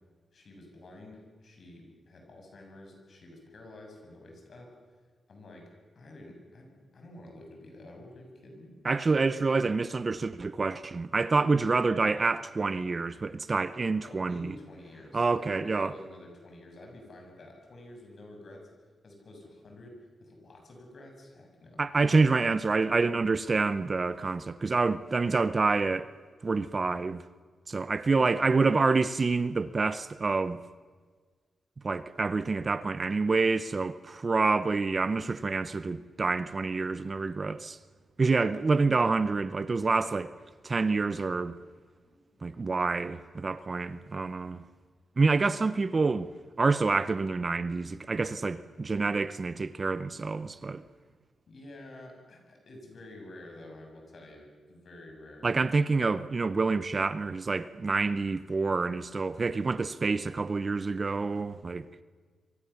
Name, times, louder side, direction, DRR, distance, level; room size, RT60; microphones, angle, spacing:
voice 1, 0.3-4.7 5.0-5.7 6.0-8.7 14.0-18.6 19.0-21.8 28.0-28.8 38.3-38.4 42.0-42.4 51.5-55.5, left 1 dB, 50° left, 7.2 m, -49 dB
voice 2, 8.8-14.6 15.1-15.9 21.8-26.1 26.4-27.2 27.7-30.6 31.8-37.8 38.2-40.3 40.6-41.6 42.4-44.6 45.2-46.3 46.6-50.8 55.4-61.9, right 4 dB, 30° right, 0.7 m, -27 dB
26.5 x 24.0 x 7.1 m
wide cardioid pair, 155°, 0 cm